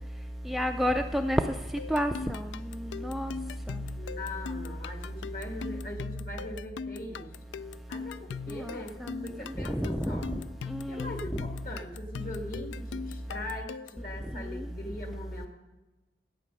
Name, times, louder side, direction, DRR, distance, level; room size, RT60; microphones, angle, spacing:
voice 1, 0.5-1.4 1.9-2.5 3.0-3.3 8.6-8.8 9.0-9.1 9.7-10.1 10.7-11.0, equal, ahead, 5 dB, 0.3 m, -28 dB
sound 1, 1.8-14.1, left 5 dB, 90° left, 0.3 m, -40 dB
voice 2, 4.0-7.3 7.9-8.9 9.2-10.3 10.9-15.5, left 1 dB, 55° left, 3 dB, 1.8 m, -41 dB
12.0 x 8.3 x 5.4 m, 1.1 s
head